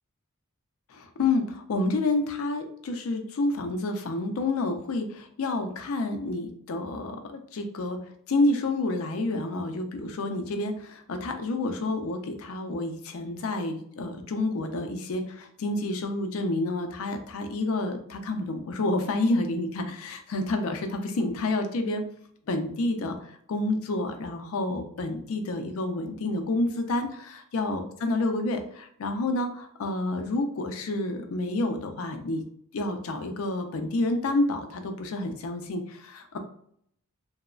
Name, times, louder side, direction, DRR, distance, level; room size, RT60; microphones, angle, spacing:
voice 1, 0.9-8.0 8.3-22.0 22.5-32.4 32.7-36.4, left 2 dB, 70° left, 6 dB, 0.4 m, -29 dB
2.9 x 2.0 x 2.3 m, 0.66 s
head